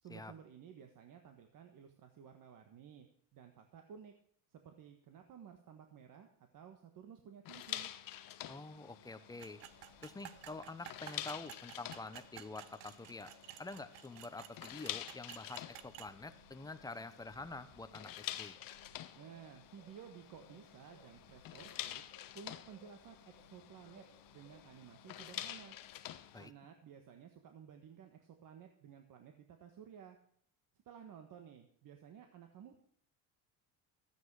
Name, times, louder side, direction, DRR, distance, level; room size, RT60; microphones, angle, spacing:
voice 1, 0.0-3.1 3.3-4.1 4.5-7.9 19.1-22.0 22.3-24.0 24.3-25.7 26.4-30.2 30.8-32.8, right 8 dB, 45° right, 5 dB, 1.5 m, -55 dB
sound 1, 7.5-26.5, left 12 dB, 50° left, 1.0 m, -48 dB
voice 2, 8.5-9.6 10.0-13.3 13.6-18.6 26.3-26.5, left 3 dB, 10° left, 10 dB, 0.8 m, -47 dB
sound 2, 9.4-16.1, right 14 dB, 70° right, 0.9 m, -53 dB
Singing, 9.7-14.0 14.4-24.7 25.0-26.1, equal, 20° right, 6.8 m, -67 dB
13.5 x 9.2 x 4.8 m, 0.65 s
cardioid pair, 125°, 45 cm